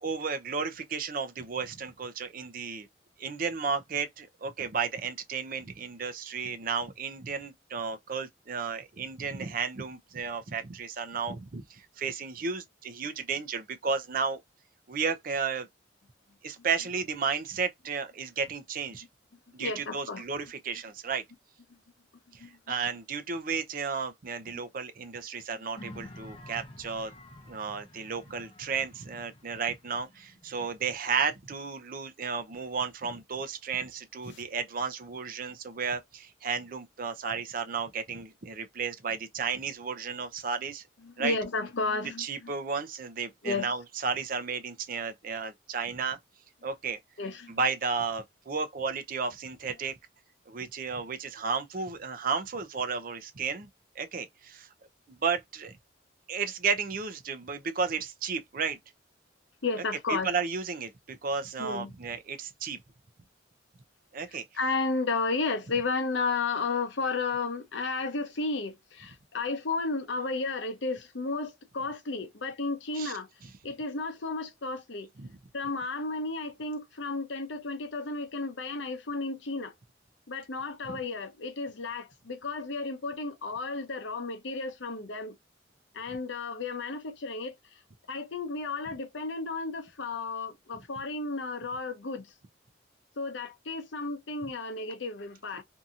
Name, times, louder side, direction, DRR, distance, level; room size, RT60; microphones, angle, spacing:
voice 1, 0.0-2.9 3.2-14.4 14.9-15.7 16.4-19.0 19.5-21.2 22.3-27.1 27.5-40.8 41.2-41.4 42.2-46.2 46.6-47.0 47.5-49.9 50.5-53.7 54.0-54.7 55.1-55.7 56.3-58.8 60.1-62.8 64.1-64.4 73.0-73.1 75.2-75.3 80.9-81.0, right 5 dB, 45° right, 0.5 m, -33 dB
voice 2, 19.6-20.2 22.4-22.6 34.3-34.4 41.0-42.5 43.4-43.7 47.2-47.6 59.6-60.3 61.6-61.9 64.5-73.3 73.6-75.1 75.5-79.7 80.3-85.3 85.9-87.5 88.1-92.3 93.2-95.6, left 3 dB, 75° left, 0.7 m, -33 dB
sound 1, 25.7-31.0, left 1 dB, 30° left, 0.7 m, -49 dB
2.7 x 2.7 x 2.3 m
head